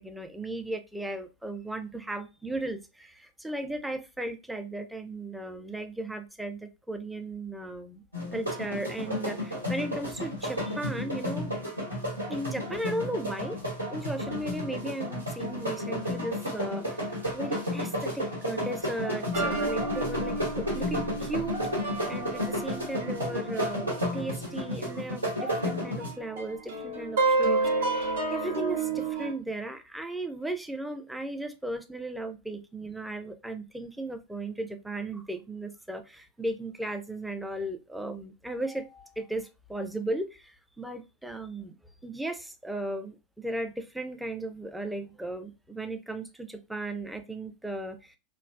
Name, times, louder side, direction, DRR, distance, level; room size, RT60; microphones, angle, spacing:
voice 1, 0.0-8.0 8.3-11.5 12.3-13.6 13.9-21.6 22.1-41.8 42.0-48.2, right 1 dB, 5° right, 0.4 m, -36 dB
sound 1, 8.1-26.1, left 1 dB, 80° right, 1.3 m, -32 dB
sound 2, 19.3-24.5 24.9-25.0 25.5-29.3, right 3 dB, 60° right, 0.8 m, -30 dB
3.1 x 2.4 x 2.2 m
figure-of-eight pair, 90°, 0 cm